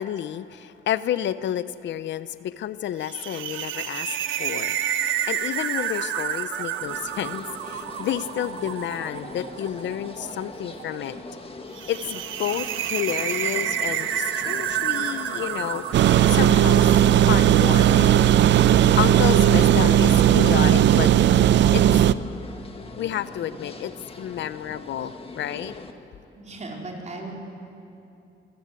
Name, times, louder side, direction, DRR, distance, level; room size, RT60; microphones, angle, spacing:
voice 1, 0.0-4.8 5.3-11.2 11.9-18.2 18.6-21.1 21.7-21.8 23.0-25.7, left 11 dB, 65° left, 15 dB, 0.6 m, -30 dB
sound 1, 3.0-17.4, right 10 dB, 80° right, 1.1 m, -30 dB
sound 2, 6.8-25.9, left 3 dB, 30° left, 1.8 m, -41 dB
sound 3, 15.9-22.1, right 11 dB, 65° right, 0.6 m, -16 dB
voice 2, 26.4-27.3, right 2 dB, 35° right, 0 dB, 4.3 m, -36 dB
24.5 x 15.0 x 8.3 m, 2.7 s
cardioid pair, 90°, 20 cm